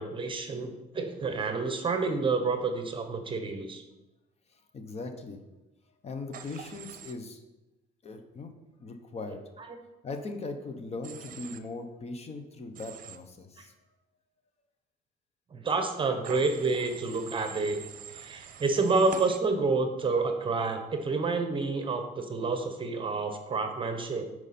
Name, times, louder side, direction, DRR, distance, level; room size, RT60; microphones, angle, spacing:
voice 1, 0.0-3.8 15.5-17.8 18.1-24.2, right 3 dB, 30° right, 6 dB, 1.0 m, -29 dB
voice 2, 4.5-5.4 6.0-7.4 8.0-8.5 8.8-9.4 10.0-13.7, left 3 dB, 40° left, 6 dB, 1.0 m, -39 dB
Human voice / Train, 6.3-7.1 11.0-11.6 12.7-13.2 16.2-19.4, right 9 dB, 55° right, 0.7 m, -45 dB
9.0 x 4.8 x 4.3 m, 1.0 s
cardioid pair, 110°, 17 cm